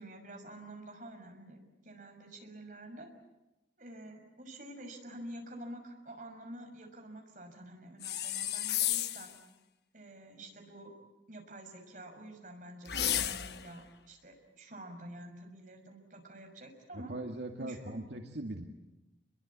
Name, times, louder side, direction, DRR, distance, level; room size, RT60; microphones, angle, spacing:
voice 1, 0.0-3.1 3.8-9.3 9.9-10.9 11.3-17.1 17.6-17.8 18.2-18.3, right 1 dB, 45° right, 3 dB, 6.2 m, -48 dB
sound 1, 8.0-9.4 12.9-13.7, left 11 dB, 70° left, 1.2 m, -32 dB
voice 2, 16.9-18.6, right 1 dB, 80° right, 2 dB, 2.1 m, -40 dB
29.0 x 22.5 x 8.6 m, 1.0 s
head